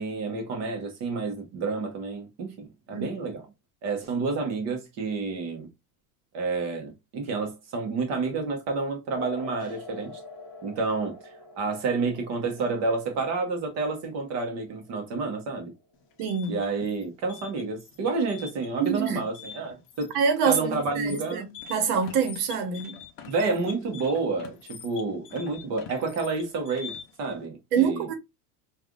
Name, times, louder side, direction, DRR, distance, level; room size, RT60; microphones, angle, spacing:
voice 1, 0.0-3.4 3.8-5.7 6.3-10.2 10.6-15.7 16.5-20.1 20.4-21.5 23.2-26.9 27.2-28.0, right 3 dB, 35° right, 1.0 m, -29 dB
sound 1, 9.1-16.2, left 3 dB, 10° left, 1.0 m, -46 dB
sound 2, 15.9-27.3, left 6 dB, 30° left, 0.4 m, -45 dB
voice 2, 16.2-16.6 18.8-19.2 20.1-23.0 27.7-28.1, right 6 dB, 75° right, 1.1 m, -26 dB
3.2 x 2.5 x 2.4 m
supercardioid pair, 155°, 45 cm